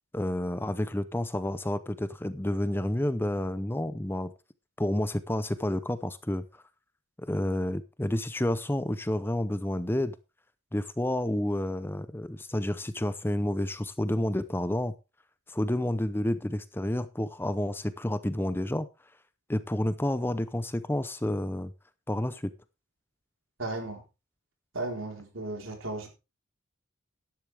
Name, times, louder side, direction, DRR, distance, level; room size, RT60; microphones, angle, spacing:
voice 1, 0.1-4.3 4.8-6.4 7.2-10.1 10.7-14.9 15.5-18.9 19.5-21.7 22.1-22.5, left 1 dB, 10° left, 0.6 m, -30 dB
voice 2, 23.6-24.0 24.7-26.1, right 2 dB, 90° right, 4.0 m, -35 dB
12.5 x 10.5 x 3.4 m
head